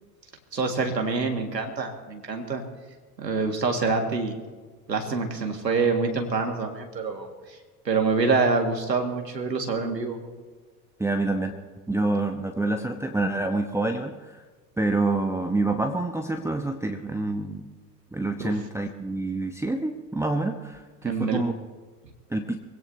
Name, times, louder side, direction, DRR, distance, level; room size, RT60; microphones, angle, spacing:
voice 1, 0.5-2.6 3.2-4.3 4.9-7.6 7.9-10.2 18.4-18.5 21.0-21.4, right 4 dB, 85° right, 4 dB, 2.0 m, -26 dB
voice 2, 11.0-11.6 11.9-14.4 14.8-17.6 18.1-21.5 22.3-22.6, right 2 dB, 5° right, 5 dB, 0.9 m, -27 dB
24.0 x 17.0 x 2.8 m, 1.4 s
figure-of-eight pair, 75°, 49 cm